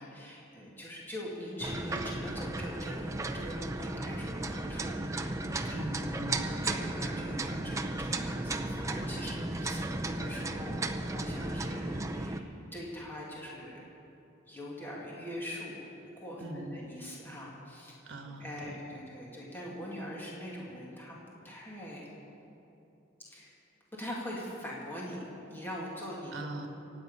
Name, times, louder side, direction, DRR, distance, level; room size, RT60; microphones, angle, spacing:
voice 1, 0.0-5.8 6.2-13.8 14.5-15.9 16.2-18.0 18.4-21.1 21.4-22.1 23.2-23.5 24.0-26.3, equal, 10° left, -5 dB, 2.2 m, -42 dB
sound 1, 1.6-12.4, right 2 dB, 15° right, 0.6 m, -35 dB
voice 2, 5.7-6.4 9.7-9.8 16.4-16.8 18.0-18.7 26.3-26.7, right 1 dB, 65° right, 4 dB, 1.5 m, -41 dB
24.5 x 9.3 x 5.5 m, 2.9 s
head